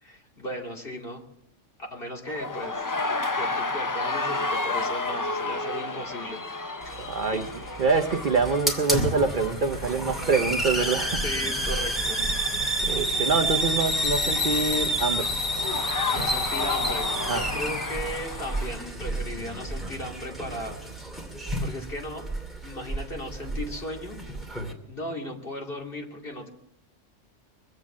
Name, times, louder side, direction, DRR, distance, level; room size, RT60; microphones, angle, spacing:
voice 1, 0.0-1.2 1.9-2.9 3.3-6.4 7.3-7.8 11.2-12.2 16.1-20.8 21.6-22.3 22.6-24.2 24.9-26.5, left 1 dB, 50° left, 0 dB, 2.9 m, -36 dB
sound 1, 2.3-18.9, left 3 dB, 30° left, 0.4 m, -33 dB
Hiss, 6.8-24.7, right 1 dB, ahead, 2.5 m, -30 dB
voice 2, 7.1-7.4 7.8-11.2 12.4-12.5 12.9-15.3 17.2-17.4, right 4 dB, 50° right, 5 dB, 0.8 m, -25 dB
23.5 x 8.2 x 7.3 m, 0.75 s
omnidirectional pair, 1.3 m